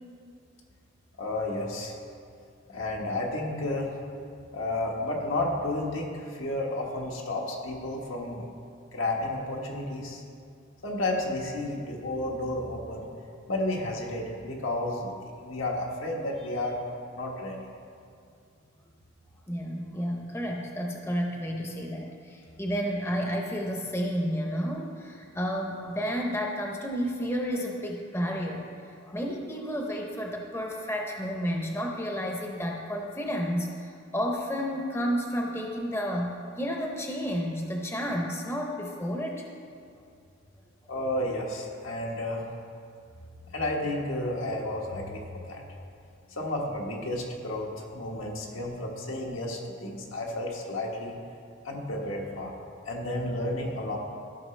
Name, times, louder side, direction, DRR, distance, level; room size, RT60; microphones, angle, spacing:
voice 1, 1.2-2.0 2.7-3.9 4.5-8.4 8.9-10.2 10.8-13.1 13.5-15.1 15.4-16.8 17.1-17.6 40.9-42.4 43.5-45.6 46.3-51.2 51.6-52.5 52.9-54.0, left 1 dB, 85° left, -1 dB, 1.3 m, -32 dB
voice 2, 19.5-39.4, equal, 15° left, 0 dB, 0.6 m, -31 dB
13.5 x 5.7 x 3.2 m, 2.3 s
head